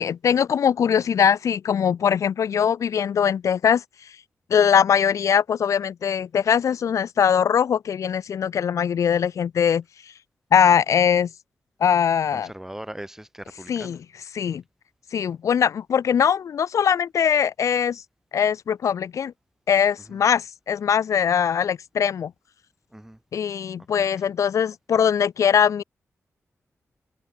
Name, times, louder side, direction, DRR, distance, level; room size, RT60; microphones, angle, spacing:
voice 1, 0.0-3.8 4.5-9.8 10.5-11.3 11.8-12.5 13.7-14.0 14.3-14.6 15.1-18.0 18.3-19.3 19.7-22.3 23.3-25.8, left 8 dB, 85° left, 0.8 m, -21 dB
voice 2, 12.3-14.0 20.1-20.2 22.9-23.2 23.9-24.1, right 1 dB, 10° right, 3.0 m, -39 dB
wide cardioid pair, 90°, 5 cm